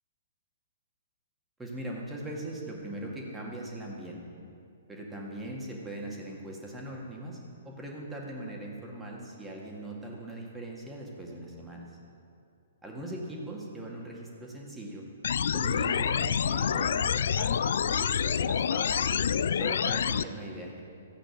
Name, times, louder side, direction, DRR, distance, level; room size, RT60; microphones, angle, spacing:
voice 1, 1.6-4.2 4.9-7.4 7.6-11.9 12.8-15.0 15.5-19.1 19.5-20.8, right 1 dB, 10° right, -2 dB, 2.1 m, -40 dB
sound 1, 15.2-20.2, left 7 dB, 55° left, 0.3 m, -27 dB
13.5 x 8.6 x 6.6 m, 2.6 s
figure-of-eight pair, 120°, 0 cm